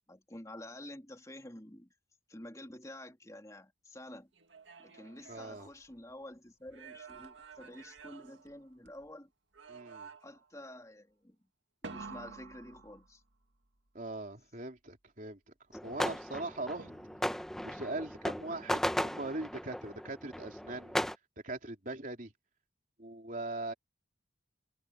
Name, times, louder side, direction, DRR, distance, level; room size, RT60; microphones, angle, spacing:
voice 1, 0.1-1.9 2.3-4.3 4.8-9.3 10.2-11.3 11.9-13.2, left 1 dB, 20° left, 3.1 m, -49 dB
sound 1, 4.3-6.2 6.7-9.1 9.5-10.5 11.8-13.4 16.8-17.4, right 4 dB, 85° right, 2.1 m, -50 dB
voice 2, 5.3-5.7 9.7-10.1 13.9-15.4 15.8-16.9 17.6-21.0 21.4-22.3 23.0-23.7, right 2 dB, 45° right, 3.7 m, -40 dB
sound 2, 15.7-21.2, equal, ahead, 0.9 m, -36 dB
head